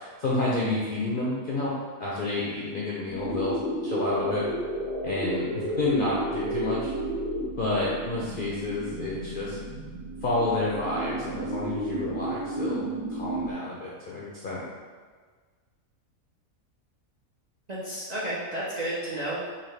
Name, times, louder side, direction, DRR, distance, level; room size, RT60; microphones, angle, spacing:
voice 1, 0.0-1.7 2.0-3.6 3.8-4.5 5.0-6.9 7.6-9.6 10.2-14.6, left 2 dB, 70° left, -6 dB, 0.5 m, -29 dB
sound 1, 3.0-13.5, right 1 dB, 65° right, 1.0 m, -32 dB
voice 2, 17.7-19.5, right 1 dB, 90° right, -7 dB, 0.3 m, -32 dB
4.0 x 2.7 x 3.1 m, 1.5 s
omnidirectional pair, 1.6 m